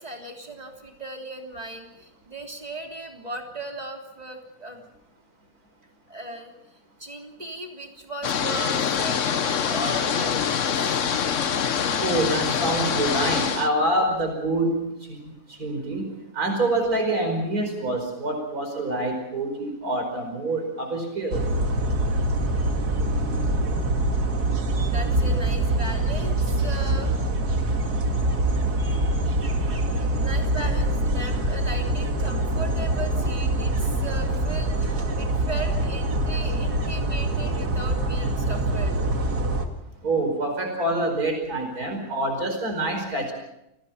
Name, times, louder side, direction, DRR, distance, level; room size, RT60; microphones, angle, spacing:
voice 1, 0.0-4.8 6.1-6.5 7.0-10.9 24.9-27.1 28.8-29.2 29.6-39.0, right 2 dB, 25° right, 1 dB, 3.5 m, -37 dB
sound 1, 8.2-13.7, left 7 dB, 55° left, 1.3 m, -25 dB
voice 2, 12.0-14.8 15.1-15.2 15.6-16.1 16.3-21.4 40.0-43.3, right 2 dB, 70° right, 4 dB, 5.6 m, -26 dB
sound 2, 21.3-39.7, right 1 dB, 85° right, 2.6 m, -24 dB
29.0 x 18.5 x 5.8 m, 0.86 s
omnidirectional pair, 1.6 m